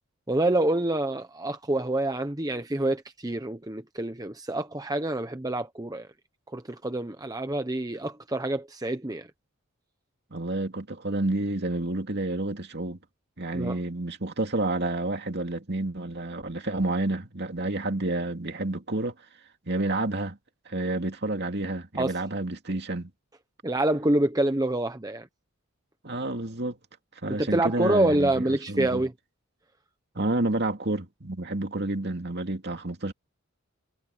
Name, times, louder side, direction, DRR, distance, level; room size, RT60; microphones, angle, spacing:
voice 1, 0.3-6.1 6.5-9.3 13.5-13.8 22.0-22.2 23.6-25.3 27.4-29.1, right 1 dB, 15° right, 0.9 m, -27 dB
voice 2, 10.3-13.0 13.4-19.1 19.7-20.4 20.7-23.1 26.0-26.8 27.2-29.0 30.1-33.1, right 2 dB, 50° right, 2.5 m, -29 dB
head